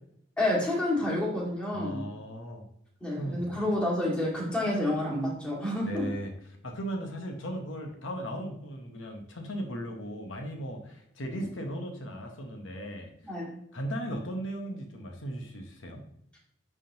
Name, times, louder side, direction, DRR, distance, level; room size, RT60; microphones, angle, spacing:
voice 1, 0.4-2.0 3.0-6.1 13.2-13.5, left 1 dB, 5° left, -5 dB, 2.1 m, -29 dB
voice 2, 1.7-2.7 3.2-3.6 5.8-6.3 6.6-13.3 13.7-16.0, equal, 80° left, 3 dB, 1.1 m, -37 dB
10.5 x 3.6 x 2.9 m, 0.73 s
head